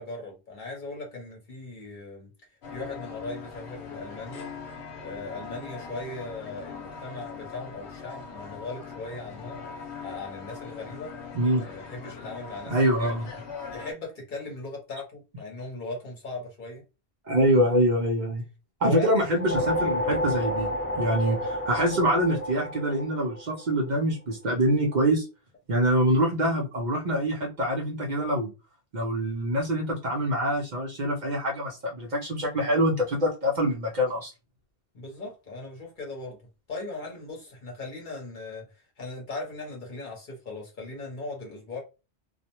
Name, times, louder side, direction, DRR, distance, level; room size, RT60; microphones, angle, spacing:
voice 1, 0.0-4.5 5.0-9.6 10.0-11.1 11.6-13.1 13.7-16.8 18.8-19.2 34.9-36.4 36.7-41.8, left 2 dB, 50° left, 1.0 m, -38 dB
sound 1, 2.6-13.9, left 5 dB, 80° left, 1.0 m, -41 dB
voice 2, 11.3-11.7 12.7-13.3 17.3-18.4 18.8-20.7 20.9-25.2 25.7-28.5 28.9-34.3, equal, 50° right, 0.6 m, -25 dB
sound 2, 19.2-23.8, equal, 15° left, 0.5 m, -30 dB
2.4 x 2.1 x 2.8 m
omnidirectional pair, 1.1 m